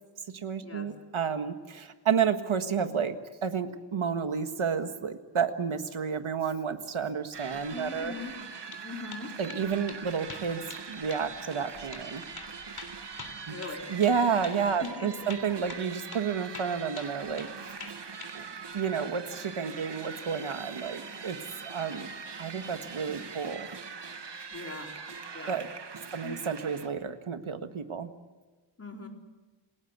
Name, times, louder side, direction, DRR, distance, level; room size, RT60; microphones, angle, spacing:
voice 1, 0.3-8.1 9.4-12.2 13.5-13.6 13.9-17.5 18.3-18.5 18.7-22.1 22.4-23.7 25.5-25.7 26.1-28.1, right 6 dB, 75° right, 8 dB, 1.7 m, -31 dB
sound 1, 7.3-26.9, right 5 dB, 55° right, 1.7 m, -42 dB
voice 2, 7.7-8.3 8.8-9.3 13.5-13.8 14.8-15.3 24.5-24.9 25.3-25.6 26.2-26.4 28.8-29.1, left 3 dB, 30° left, 2 dB, 4.0 m, -40 dB
sound 2, 8.4-8.8 9.1-9.6 9.9-10.0 10.3-10.8 11.1-11.2 11.5-11.6 11.9-12.1 12.4-14.2 14.4-14.6 14.8-15.0 15.3-15.9 16.1-16.3 16.5-17.5 17.8-18.3, left 4 dB, 50° left, 3.5 m, -44 dB
28.5 x 18.5 x 8.2 m, 1.3 s
wide cardioid pair, 110°, 48 cm